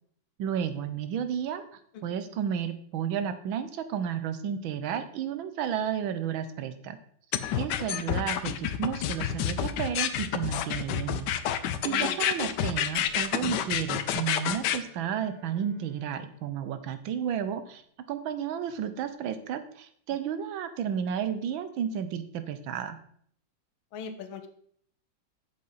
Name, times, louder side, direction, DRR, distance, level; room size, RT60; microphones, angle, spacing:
voice 1, 0.4-1.6 2.0-7.0 7.5-11.3 11.8-17.8 18.1-23.0, right 8 dB, 85° right, 10 dB, 1.6 m, -32 dB
sound 1, 7.3-14.8, left 10 dB, 70° left, 1.1 m, -28 dB
voice 2, 7.6-7.9 11.8-12.2 23.9-24.5, left 6 dB, 85° left, 8 dB, 1.7 m, -41 dB
Bowed string instrument, 12.9-18.0, left 1 dB, 40° right, 3.5 m, -57 dB
7.7 x 7.6 x 4.1 m, 0.63 s
omnidirectional pair, 2.1 m